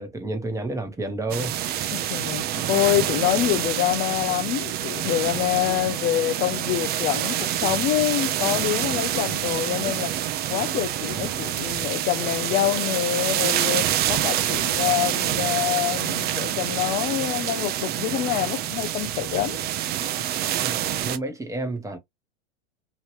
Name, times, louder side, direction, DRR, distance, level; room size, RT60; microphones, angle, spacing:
voice 1, 0.0-1.6 20.5-22.0, right 2 dB, 10° right, 1.1 m, -30 dB
sound 1, 1.3-21.2, right 11 dB, 30° right, 0.5 m, -27 dB
voice 2, 1.9-10.1 10.5-19.6, left 14 dB, 30° left, 0.4 m, -26 dB
3.1 x 2.8 x 3.0 m
hypercardioid pair, 100°, 32 cm